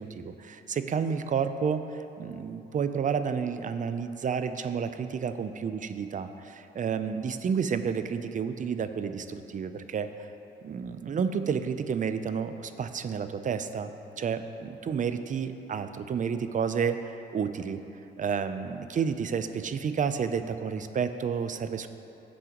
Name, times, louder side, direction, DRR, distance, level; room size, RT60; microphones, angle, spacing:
voice 1, 0.0-10.3 10.6-13.9 14.2-17.8 18.2-21.9, right 6 dB, 40° right, 10 dB, 0.5 m, -30 dB
15.5 x 6.2 x 3.0 m, 2.9 s
cardioid pair, 90°, 20 cm